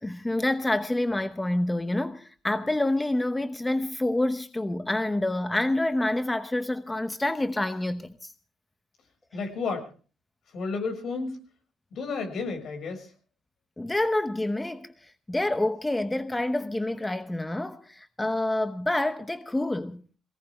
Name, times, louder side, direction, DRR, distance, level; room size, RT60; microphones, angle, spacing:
voice 1, 0.0-8.3 13.8-20.0, left 1 dB, 15° left, 0.9 m, -27 dB
voice 2, 9.3-9.9 10.5-11.4 11.9-13.1, left 4 dB, 65° left, 6.5 m, -32 dB
22.5 x 18.0 x 3.6 m
cardioid pair, 90°, 0 cm